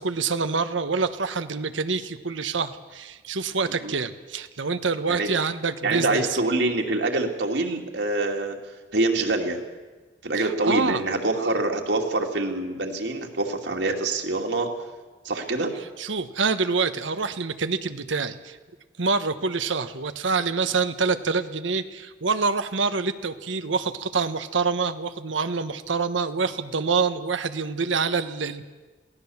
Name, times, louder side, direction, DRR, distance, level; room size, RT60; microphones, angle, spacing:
voice 1, 0.0-6.3 10.3-11.0 11.4-11.5 16.0-18.6 19.0-28.6, right 4 dB, 90° right, 10 dB, 1.1 m, -26 dB
voice 2, 5.8-8.6 8.9-9.6 10.2-14.7 15.2-15.8, right 2 dB, 70° right, 2 dB, 2.6 m, -25 dB
23.0 x 16.5 x 7.2 m, 1.3 s
head